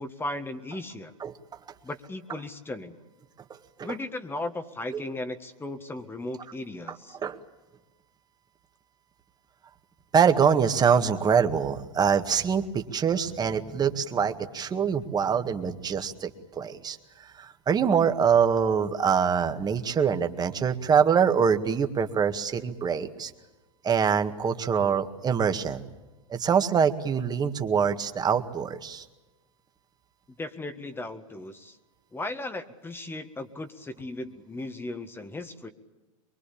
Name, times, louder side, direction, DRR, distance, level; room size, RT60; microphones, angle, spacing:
voice 1, 0.0-1.1 1.8-2.9 3.8-7.2 30.4-31.8 32.1-35.7, left 2 dB, 15° left, 9 dB, 1.7 m, -36 dB
voice 2, 10.1-17.0 17.4-23.3 23.8-25.8 26.3-29.0, right 7 dB, 25° right, 7 dB, 2.0 m, -24 dB
23.5 x 23.0 x 8.7 m, 1.1 s
hypercardioid pair, 110°, 17 cm